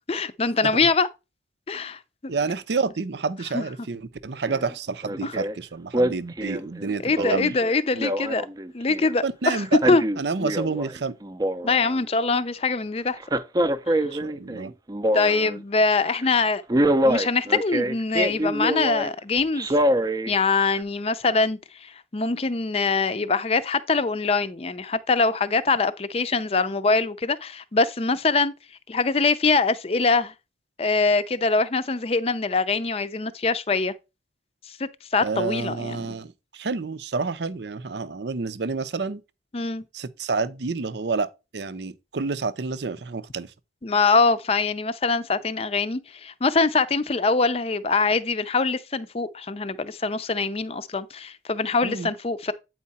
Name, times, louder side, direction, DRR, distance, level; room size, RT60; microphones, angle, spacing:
voice 1, 0.1-1.1 1.7-2.0 3.5-3.6 5.2-5.3 7.0-8.5 8.7-9.6 9.9-10.0 11.6-13.2 15.1-19.8 20.3-28.5 28.9-30.3 30.8-33.9 34.8-36.1 39.5-39.8 43.8-52.5, left 4 dB, 35° left, 0.5 m, -23 dB
voice 2, 2.3-7.6 9.2-11.1 14.1-14.7 35.2-39.2 39.9-43.5 51.8-52.1, right 4 dB, 75° right, 0.6 m, -29 dB
Male speech man speaking, 4.5-4.7 5.0-5.5 5.9-9.2 9.6-11.0 11.2-12.0 13.2-15.6 16.0-16.3 16.7-19.1 19.6-20.3 20.8-20.9, right 1 dB, 20° right, 0.5 m, -25 dB
8.6 x 4.7 x 4.1 m
head